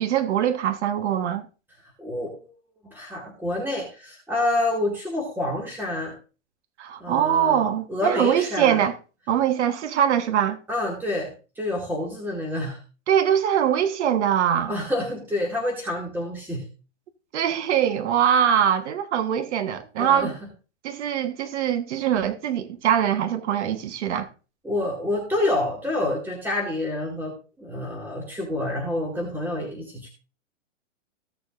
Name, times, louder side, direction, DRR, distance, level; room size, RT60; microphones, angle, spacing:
voice 1, 0.0-1.4 6.8-9.0 9.3-10.6 13.1-14.8 17.3-20.3 20.8-24.3, right 9 dB, 70° right, 1.2 m, -22 dB
voice 2, 2.0-2.5 2.8-6.1 7.0-7.6 7.9-8.8 10.7-12.8 14.7-16.6 20.0-20.3 24.6-30.1, left 1 dB, 5° right, 2.2 m, -28 dB
16.0 x 6.7 x 2.5 m
hypercardioid pair, 135°, 35 cm